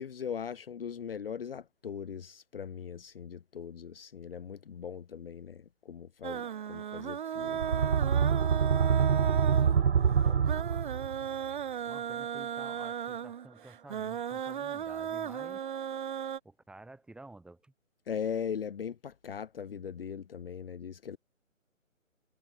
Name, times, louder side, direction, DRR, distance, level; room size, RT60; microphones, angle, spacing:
voice 1, 0.0-7.8 18.1-21.2, left 7 dB, 45° left, 1.9 m, -39 dB
sound 1, 6.2-16.4, right 8 dB, 40° right, 2.6 m, -36 dB
sound 2, 7.5-11.3, right 7 dB, 55° right, 1.0 m, -26 dB
voice 2, 9.1-11.2 11.9-15.6 16.4-17.7, right 2 dB, ahead, 7.5 m, -52 dB
figure-of-eight pair, 155°, 40 cm